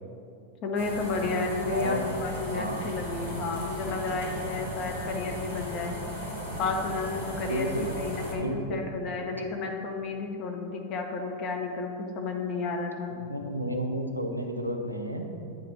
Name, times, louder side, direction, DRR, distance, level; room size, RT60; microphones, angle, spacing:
voice 1, 0.6-6.0 6.6-13.1, left 4 dB, 40° left, 2 dB, 0.9 m, -32 dB
sound 1, 0.7-8.3, equal, 70° left, 1.7 m, -36 dB
voice 2, 2.5-2.9 7.4-7.9 8.4-8.8 13.2-15.2, right 1 dB, 90° right, 3 dB, 0.6 m, -31 dB
8.7 x 3.3 x 5.4 m, 2.6 s
figure-of-eight pair, 90°, 0 cm